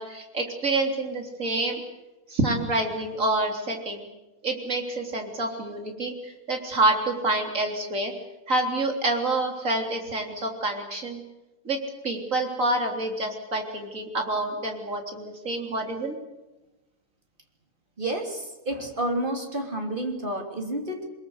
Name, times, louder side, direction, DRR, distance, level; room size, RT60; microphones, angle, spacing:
voice 1, 0.0-1.8 2.3-4.0 4.4-8.1 8.5-11.2 11.6-11.8 12.0-16.2, right 2 dB, 60° right, 3 dB, 4.1 m, -27 dB
voice 2, 18.0-21.1, right 1 dB, 35° right, 3 dB, 3.4 m, -30 dB
24.5 x 21.5 x 8.0 m, 1.1 s
omnidirectional pair, 1.6 m